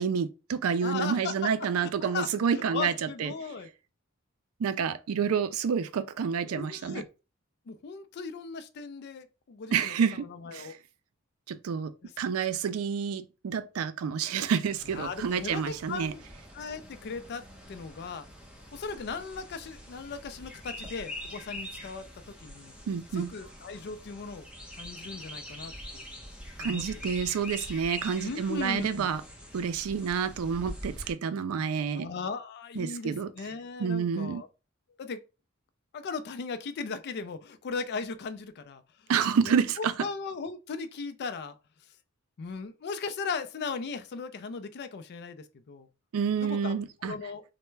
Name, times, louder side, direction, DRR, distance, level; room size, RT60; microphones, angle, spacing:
voice 1, 0.0-3.3 4.6-7.0 9.7-10.8 11.5-11.9 12.2-16.1 22.9-23.3 26.6-29.2 29.5-32.1 32.8-33.3 33.8-34.4 39.1-39.9 46.1-47.1, right 6 dB, 85° right, 0.4 m, -29 dB
voice 2, 0.8-3.7 6.4-7.1 7.7-10.8 12.0-12.1 14.9-16.2 16.5-18.3 18.7-22.7 23.1-24.5 24.7-26.0 26.6-27.0 28.2-29.1 31.5-31.7 31.9-34.5 35.0-35.2 35.9-39.1 39.4-41.6 42.4-45.9 46.4-46.7 47.0-47.4, left 4 dB, 50° left, 0.4 m, -38 dB
sound 1, 14.8-31.1, left 1 dB, 5° right, 0.9 m, -44 dB
3.2 x 2.1 x 3.1 m
head